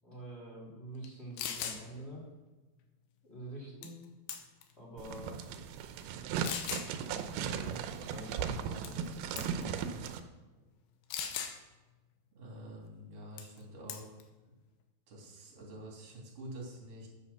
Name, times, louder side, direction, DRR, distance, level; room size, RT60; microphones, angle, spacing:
voice 1, 0.0-2.2 3.2-4.0 4.8-5.3 6.9-10.0, right 1 dB, 15° left, -5 dB, 3.3 m, -47 dB
sound 1, 1.0-1.1 1.4-1.8 3.8-4.0 4.3-4.7 5.4-5.5 6.4-6.9 8.8-9.1 9.4-9.6 11.1-11.6 13.4-13.6 13.9-14.2, left 8 dB, 85° left, 3.1 m, -38 dB
sound 2, 5.0-10.2, right 7 dB, 90° right, 2.7 m, -37 dB
voice 2, 12.3-14.2 15.1-17.1, right 1 dB, 40° right, -2 dB, 3.7 m, -47 dB
9.9 x 8.5 x 7.0 m, 1.2 s
omnidirectional pair, 4.5 m